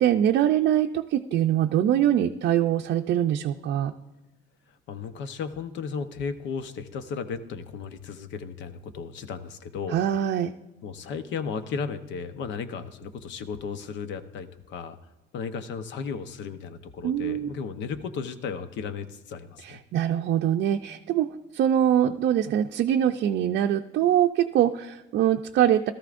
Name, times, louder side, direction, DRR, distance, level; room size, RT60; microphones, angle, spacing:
voice 1, 0.0-3.9 9.9-10.5 17.0-17.5 19.6-25.9, right 10 dB, 65° right, 5 dB, 0.5 m, -23 dB
voice 2, 4.9-10.0 10.8-15.0 15.3-19.8, left 5 dB, 75° left, 9 dB, 0.9 m, -35 dB
17.5 x 13.5 x 2.5 m, 1.1 s
cardioid pair, 140°, 19 cm